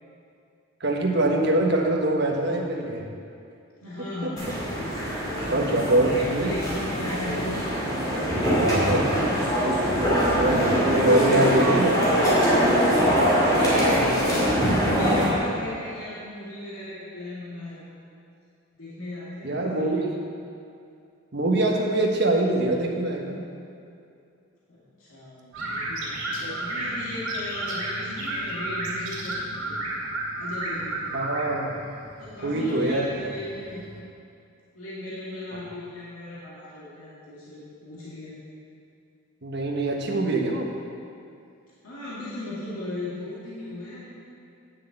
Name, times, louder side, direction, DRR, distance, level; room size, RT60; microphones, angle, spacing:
voice 1, 0.8-3.1 4.2-4.3 5.5-6.5 8.5-9.1 10.3-12.0 13.6-14.1 19.4-20.1 21.3-23.4 26.4-26.6 31.1-31.8 32.4-33.1 39.4-40.7, right 1 dB, 50° right, 0 dB, 1.3 m, -24 dB
voice 2, 3.8-7.5 8.2-9.0 11.1-11.9 13.3-17.8 18.8-20.0 24.7-29.8 30.4-31.2 32.2-33.8 34.7-38.3 41.8-44.1, left 1 dB, 80° left, -8 dB, 2.2 m, -37 dB
sound 1, 4.4-15.3, equal, 15° left, 2.7 m, -23 dB
sound 2, 25.5-34.0, right 1 dB, 70° right, 2.9 m, -32 dB
9.7 x 6.5 x 7.8 m, 2.5 s
head